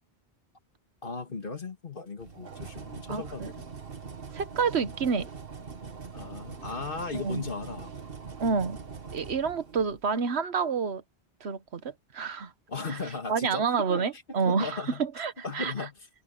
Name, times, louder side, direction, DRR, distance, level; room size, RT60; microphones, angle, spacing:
voice 1, 1.0-3.4 6.1-7.9 12.7-15.0 15.4-15.9, left 3 dB, 55° left, 2.1 m, -36 dB
sound 1, 2.2-10.2, right 5 dB, 65° right, 1.7 m, -42 dB
voice 2, 3.1-3.5 4.3-5.3 7.1-7.4 8.4-8.8 9.1-11.0 11.4-12.5 12.9-13.0 13.3-15.7, right 5 dB, 80° right, 1.4 m, -29 dB
omnidirectional pair, 1.1 m